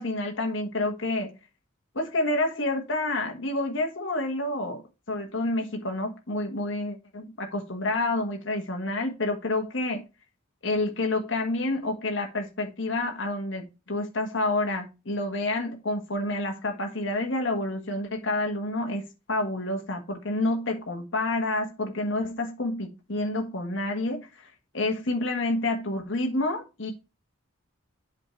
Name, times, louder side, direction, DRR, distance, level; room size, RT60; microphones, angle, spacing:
voice 1, 0.0-1.4 1.9-4.8 5.1-10.0 10.6-24.5 24.7-26.9, left 2 dB, 60° left, 1.5 m, -29 dB
8.1 x 4.2 x 4.4 m
head